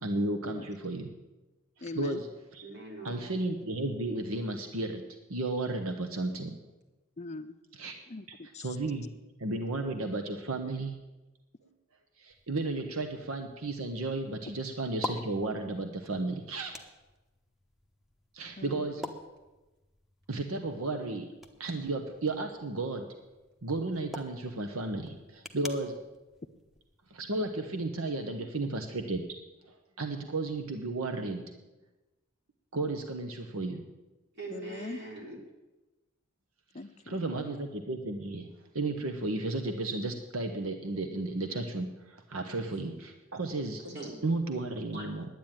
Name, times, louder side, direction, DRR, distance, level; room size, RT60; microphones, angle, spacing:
voice 1, 0.0-1.1 1.9-2.3 2.5-2.6 3.0-5.0 5.3-6.6 7.8-8.0 8.6-9.1 9.4-11.0 12.2-16.8 18.3-19.0 20.3-21.3 21.6-23.1 23.6-26.0 27.1-29.2 30.0-31.4 32.7-33.8 37.1-38.5 38.7-43.8 44.2-45.3, right 2 dB, 75° right, 5 dB, 1.0 m, -33 dB
voice 2, 1.8-2.2 7.2-7.6 8.1-8.8 18.6-18.9 28.3-28.5 34.5-35.0 36.7-37.2, left 3 dB, 30° left, 10 dB, 0.5 m, -42 dB
voice 3, 2.6-3.3 18.8-19.1 34.3-35.4 43.8-44.2 44.9-45.1, right 2 dB, 50° right, -1 dB, 3.6 m, -42 dB
sound 1, 12.3-27.5, left 2 dB, ahead, 1.0 m, -48 dB
10.5 x 9.3 x 9.0 m, 1.1 s
head